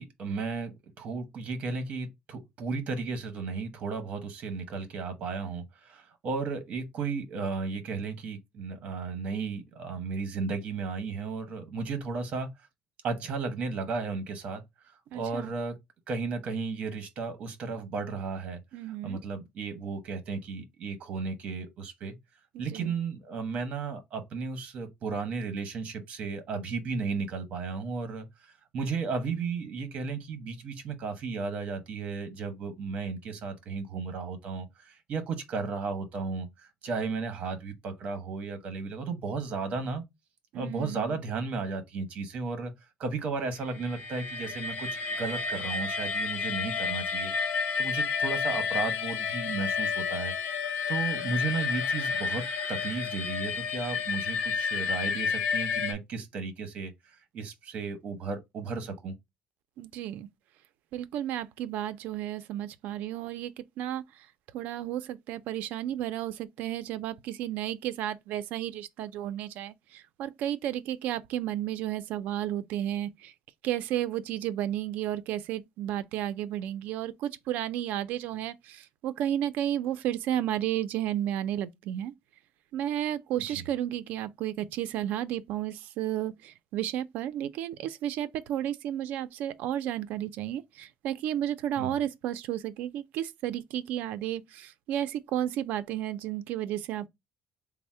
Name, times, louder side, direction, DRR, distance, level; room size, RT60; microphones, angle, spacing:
voice 1, 0.0-12.5 13.0-15.8 16.1-18.6 18.9-22.1 22.6-28.3 28.7-36.5 36.8-40.0 40.5-42.7 43.0-44.9 45.2-50.3 50.9-52.4 52.7-56.9 57.3-59.1 83.5-83.6 91.8-91.9, right 4 dB, 45° right, 0.9 m, -34 dB
voice 2, 15.1-15.5 18.7-19.2 22.5-22.9 40.5-41.2 59.8-60.3 60.9-64.0 64.5-73.3 73.6-82.1 82.7-97.1, right 12 dB, 75° right, 0.4 m, -32 dB
sound 1, 43.7-55.9, left 6 dB, 80° left, 0.7 m, -31 dB
3.4 x 2.0 x 4.2 m
cardioid pair, 160°, 3 cm